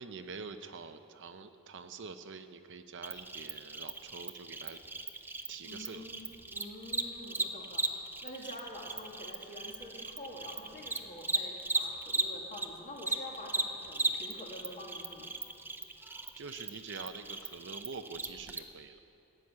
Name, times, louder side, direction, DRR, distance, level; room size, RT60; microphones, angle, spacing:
voice 1, 0.0-4.8 5.5-6.0 16.0-19.0, right 5 dB, 55° right, 9 dB, 0.6 m, -46 dB
Cricket, 3.0-12.7 13.0-18.6, right 3 dB, 10° right, 0.5 m, -36 dB
voice 2, 5.6-15.3, left 1 dB, 35° left, -2 dB, 2.5 m, -47 dB
15.0 x 7.7 x 9.7 m, 2.6 s
head